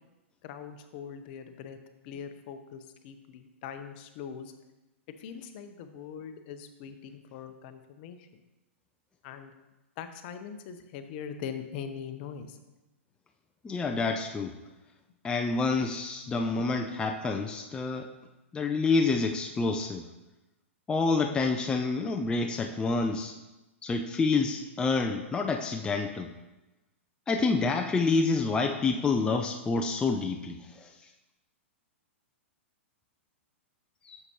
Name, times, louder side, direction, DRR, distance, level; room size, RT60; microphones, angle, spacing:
voice 1, 0.4-1.8 2.0-4.5 5.1-8.3 9.2-9.5 10.0-12.6 16.6-16.7, left 7 dB, 45° left, 8 dB, 0.8 m, -42 dB
voice 2, 13.6-14.6 15.2-18.1 18.5-20.1 20.9-23.4 23.8-26.3 27.3-30.9 34.0-34.2, left 4 dB, 10° left, 3 dB, 0.4 m, -28 dB
8.0 x 6.6 x 3.0 m, 1.0 s
hypercardioid pair, 115°, 7 cm